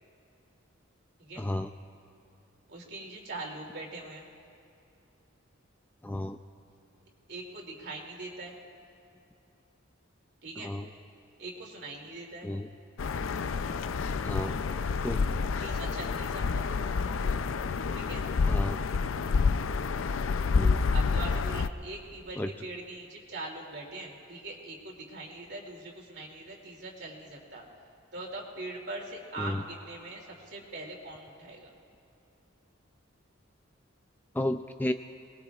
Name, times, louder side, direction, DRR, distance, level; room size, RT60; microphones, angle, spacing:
voice 1, 1.4-1.7 6.0-6.4 10.6-10.9 12.4-12.7 14.2-14.5 15.0-15.2 18.5-18.8 20.5-20.8 22.4-22.5 29.4-29.6 34.3-34.9, left 1 dB, 10° left, 7 dB, 0.3 m, -32 dB
voice 2, 2.7-4.2 7.3-8.5 10.4-10.7 11.4-12.5 15.6-16.7 17.9-18.2 20.9-27.6 28.1-31.7, right 2 dB, 55° right, -1 dB, 2.7 m, -42 dB
sound 1, 13.0-21.7, left 4 dB, 75° left, 0.5 m, -28 dB
29.5 x 20.5 x 2.4 m, 2.6 s
head